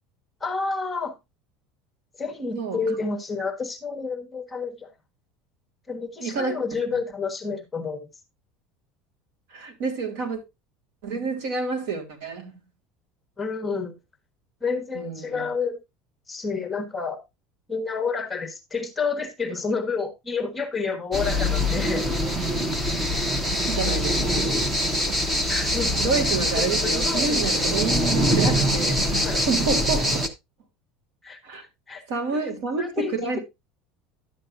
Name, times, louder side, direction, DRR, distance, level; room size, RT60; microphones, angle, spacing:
voice 1, 0.4-1.1 2.2-4.9 5.9-8.1 13.4-14.0 14.6-15.8 16.3-17.2 17.7-22.1 25.4-26.1 26.6-27.5 29.2-29.4 31.2-31.4 31.9-32.0 32.4-32.5 32.8-33.4, left 4 dB, 10° left, 1.4 m, -29 dB
voice 2, 6.2-6.6 9.5-10.4 11.0-12.5 14.9-15.5 23.7-24.5 26.0-30.3 31.4-31.6 32.1-33.4, right 4 dB, 70° right, 3.2 m, -28 dB
sound 1, 21.1-30.3, equal, 15° right, 1.1 m, -23 dB
11.5 x 7.8 x 2.6 m
cardioid pair, 155°, 0 cm